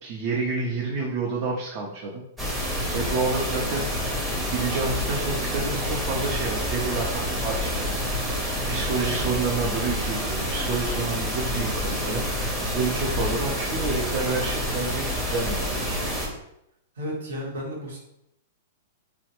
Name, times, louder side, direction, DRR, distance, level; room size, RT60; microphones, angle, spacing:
voice 1, 0.0-2.2 2.9-4.2 4.5-16.0, right 4 dB, 45° right, -2 dB, 0.5 m, -29 dB
sound 1, 2.4-16.3, equal, 5° right, 0.7 m, -28 dB
voice 2, 17.0-18.0, equal, 90° right, -1 dB, 1.0 m, -33 dB
3.1 x 2.0 x 2.9 m, 0.81 s
hypercardioid pair, 140°, 0 cm